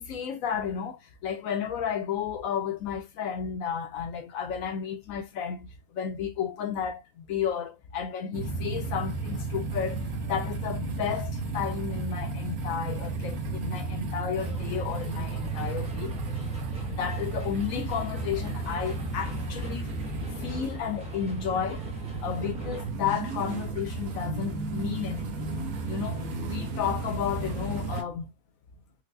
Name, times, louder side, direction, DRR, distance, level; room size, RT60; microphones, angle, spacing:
voice 1, 0.0-16.1 16.8-19.9 20.3-21.8 22.2-25.5 25.9-28.3, left 8 dB, 70° left, 0.9 m, -32 dB
sound 1, 8.3-28.0, right 3 dB, 70° right, 1.3 m, -33 dB
sound 2, 14.4-22.9, right 2 dB, 5° right, 0.6 m, -43 dB
4.5 x 2.1 x 2.4 m
omnidirectional pair, 1.7 m